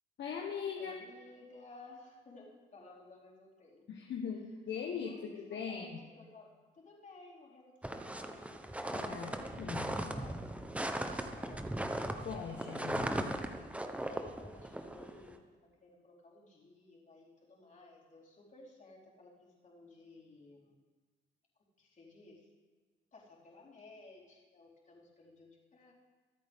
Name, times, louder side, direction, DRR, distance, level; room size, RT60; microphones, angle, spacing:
voice 1, 0.2-0.9 3.9-6.0 8.9-10.0 12.2-13.3, left 6 dB, 60° left, 0 dB, 1.4 m, -40 dB
voice 2, 0.8-3.8 5.0-8.6 8.9-11.7 14.0-20.7 21.8-22.5 23.1-25.9, left 2 dB, 40° left, -5 dB, 4.2 m, -56 dB
sound 1, 7.8-15.3, right 1 dB, 5° right, 0.9 m, -38 dB
24.5 x 8.6 x 3.7 m, 1.4 s
cardioid pair, 90°, 20 cm